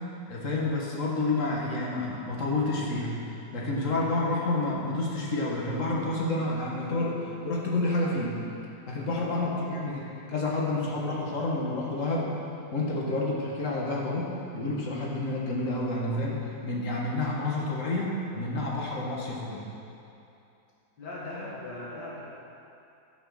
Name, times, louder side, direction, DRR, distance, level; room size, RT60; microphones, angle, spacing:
voice 1, 0.3-3.1 3.5-8.3 8.9-10.0 10.3-12.3 12.7-19.7, left 2 dB, 50° left, -3 dB, 1.8 m, -29 dB
voice 2, 9.3-9.7 21.0-22.2, left 2 dB, 80° left, -5 dB, 2.3 m, -39 dB
10.5 x 6.2 x 6.4 m, 2.7 s
omnidirectional pair, 1.8 m